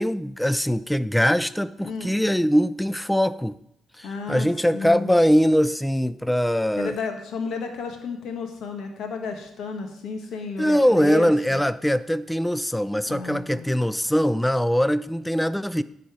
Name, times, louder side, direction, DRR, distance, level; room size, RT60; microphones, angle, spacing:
voice 1, 0.0-3.6 4.0-7.0 10.6-15.8, equal, 5° left, 15 dB, 0.4 m, -22 dB
voice 2, 1.8-2.2 4.0-4.5 4.7-5.1 6.8-11.6 13.1-13.7, left 4 dB, 75° left, 4 dB, 1.4 m, -32 dB
10.0 x 4.2 x 5.0 m, 0.76 s
cardioid pair, 90°, 0 cm